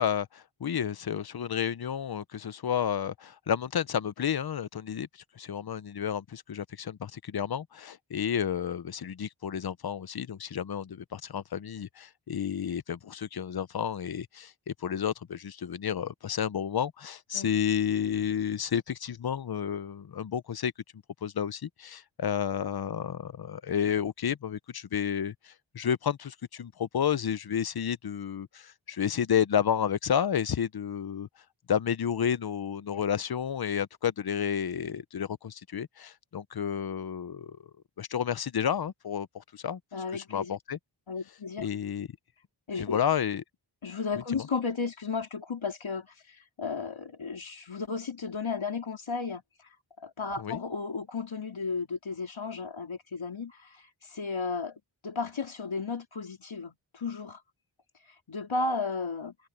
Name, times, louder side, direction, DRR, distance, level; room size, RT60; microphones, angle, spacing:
voice 1, 0.0-20.7 21.2-31.3 31.7-37.6 38.0-39.8 40.1-40.8 41.6-42.1 42.8-43.4 50.4-50.6, left 8 dB, 55° left, 0.7 m, -31 dB
voice 2, 39.9-40.6 41.1-41.7 42.7-43.0 43.8-49.4 50.0-57.4 58.3-59.4, left 4 dB, 80° left, 3.8 m, -34 dB
wide cardioid pair, 70°, 47 cm